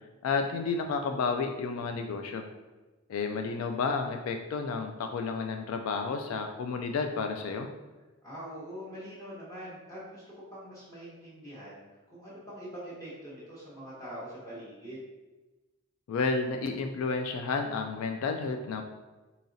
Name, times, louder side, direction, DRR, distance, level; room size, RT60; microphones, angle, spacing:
voice 1, 0.2-2.4 3.1-7.7 16.1-18.8, left 4 dB, 85° left, 5 dB, 0.3 m, -31 dB
voice 2, 8.2-11.8 12.1-15.1, equal, 15° left, -8 dB, 0.7 m, -43 dB
4.1 x 2.8 x 2.6 m, 1.2 s
head